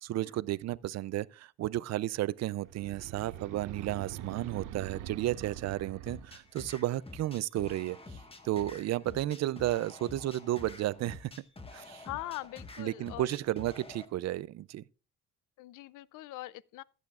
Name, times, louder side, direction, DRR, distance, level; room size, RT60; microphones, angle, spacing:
voice 1, 0.0-8.2 8.4-11.3 11.7-12.0 12.8-14.8, right 14 dB, 60° right, 0.4 m, -33 dB
sound 1, 2.6-6.5, right 11 dB, 90° right, 0.8 m, -43 dB
sound 2, 6.1-14.1, left 3 dB, 20° left, 1.4 m, -48 dB
voice 2, 12.0-13.3 15.6-16.8, left 16 dB, 85° left, 0.5 m, -42 dB
15.5 x 8.2 x 2.4 m
cardioid pair, 90°, 30 cm